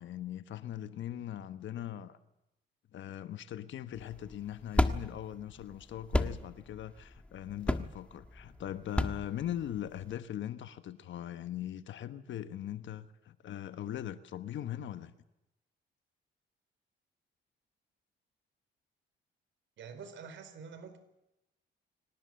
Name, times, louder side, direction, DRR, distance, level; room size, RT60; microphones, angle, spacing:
voice 1, 0.0-2.2 2.9-15.1, left 11 dB, 70° left, 1.2 m, -40 dB
sound 1, 4.0-10.1, left 1 dB, 5° left, 1.4 m, -33 dB
voice 2, 19.8-21.0, right 6 dB, 70° right, 4.5 m, -47 dB
25.0 x 18.5 x 7.7 m
cardioid pair, 90°, 20 cm